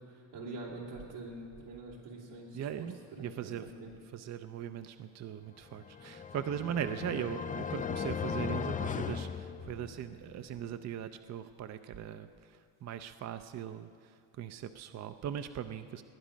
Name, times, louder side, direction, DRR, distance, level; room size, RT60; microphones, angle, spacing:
voice 1, 0.0-2.9 3.2-3.9, right 2 dB, 85° right, -3 dB, 3.4 m, -45 dB
voice 2, 2.5-3.6 4.1-16.0, right 9 dB, 40° right, 10 dB, 0.5 m, -39 dB
sound 1, 5.8-10.2, left 6 dB, 20° left, 0.4 m, -37 dB
19.0 x 10.5 x 5.2 m, 2.3 s
cardioid pair, 95°, 44 cm